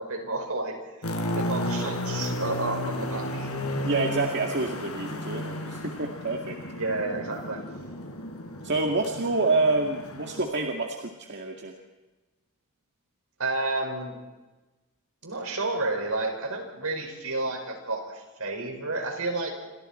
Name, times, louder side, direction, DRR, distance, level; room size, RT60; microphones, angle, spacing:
voice 1, 0.0-3.5 6.7-7.7 13.4-14.2 15.2-19.5, right 2 dB, 75° right, 3 dB, 5.6 m, -31 dB
sound 1, 1.0-10.4, left 1 dB, 90° left, 4.3 m, -33 dB
voice 2, 3.8-6.6 8.6-11.7, right 3 dB, 50° right, 2 dB, 2.1 m, -27 dB
28.5 x 26.0 x 4.5 m, 1.2 s
head